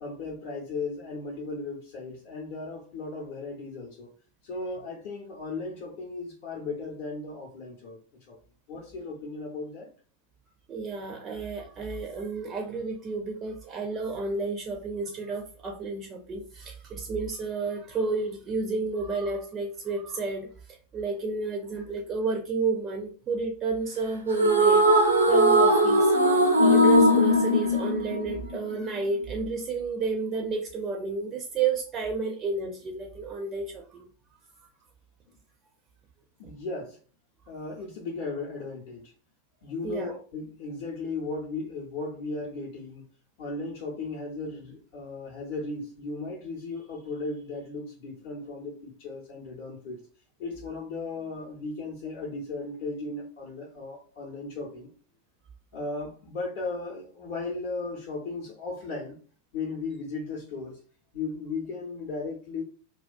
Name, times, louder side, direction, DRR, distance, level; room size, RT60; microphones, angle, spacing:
voice 1, 0.0-4.1 4.4-8.0 8.3-8.4 8.7-9.9 36.4-37.0 37.5-39.1 39.6-43.0 43.4-50.0 50.4-54.9 55.7-59.2 59.5-60.8 61.1-62.6, left 3 dB, 50° left, 0.7 m, -36 dB
voice 2, 10.7-20.5 20.9-26.1 26.6-34.0 39.8-40.2, right 4 dB, 25° right, 0.4 m, -31 dB
sound 1, 24.3-28.7, equal, 85° right, 0.5 m, -19 dB
2.3 x 2.2 x 2.4 m
figure-of-eight pair, 90°, 0 cm